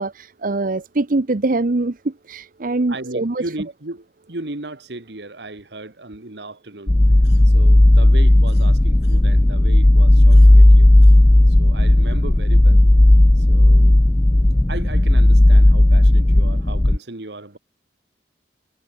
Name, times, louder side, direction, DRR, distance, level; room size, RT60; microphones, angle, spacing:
voice 1, 0.0-3.4, right 2 dB, 50° right, 0.8 m, -23 dB
voice 2, 2.9-7.0 7.4-10.9 11.5-12.8 13.4-14.0 14.7-17.6, right 2 dB, 70° right, 2.0 m, -35 dB
sound 1, 6.9-17.0, left 1 dB, 10° left, 0.3 m, -12 dB
sound 2, 7.0-9.6 9.9-11.8, left 1 dB, 65° left, 6.8 m, -50 dB
head